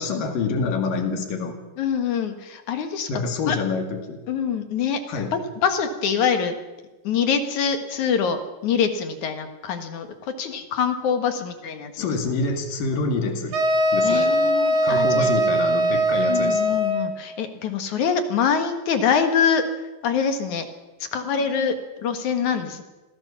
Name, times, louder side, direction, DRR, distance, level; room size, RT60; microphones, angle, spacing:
voice 1, 0.0-1.6 3.1-4.2 5.1-5.3 12.0-13.6 13.9-14.3 14.8-16.6, left 4 dB, 80° left, 6 dB, 3.9 m, -26 dB
voice 2, 1.8-3.6 4.3-5.0 5.3-6.6 7.0-12.1 14.0-15.3 16.3-19.6 20.0-20.7 21.1-22.8, left 6 dB, 65° left, 7 dB, 3.0 m, -25 dB
sound 1, 13.5-17.2, right 1 dB, 65° right, 3.6 m, -21 dB
25.5 x 17.0 x 7.2 m, 1.1 s
omnidirectional pair, 3.8 m